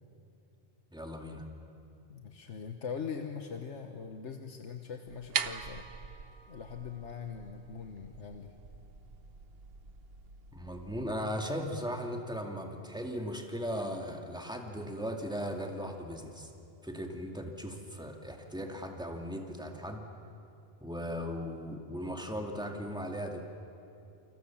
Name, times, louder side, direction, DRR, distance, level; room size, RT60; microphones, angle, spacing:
voice 1, 0.9-1.5 10.5-16.5 16.8-20.1 20.8-23.4, equal, 5° right, 2 dB, 2.3 m, -37 dB
voice 2, 2.1-5.8 6.5-8.5, left 6 dB, 85° left, 5 dB, 1.5 m, -41 dB
sound 1, 5.1-11.0, right 6 dB, 60° right, 1.1 m, -42 dB
28.5 x 26.0 x 7.2 m, 2.8 s
omnidirectional pair, 1.2 m